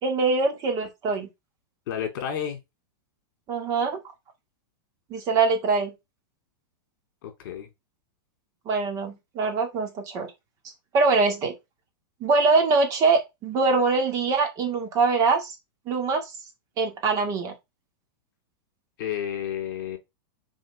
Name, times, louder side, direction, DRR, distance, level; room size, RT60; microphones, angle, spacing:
voice 1, 0.0-1.3 3.5-4.0 5.1-5.9 8.7-10.3 10.9-11.5 12.2-15.6 15.9-16.3 16.8-17.5, right 4 dB, 30° right, 2.1 m, -23 dB
voice 2, 1.9-2.6 7.2-7.7 19.0-20.0, left 9 dB, 55° left, 3.3 m, -31 dB
6.3 x 4.9 x 5.3 m
supercardioid pair, 160°, 12 cm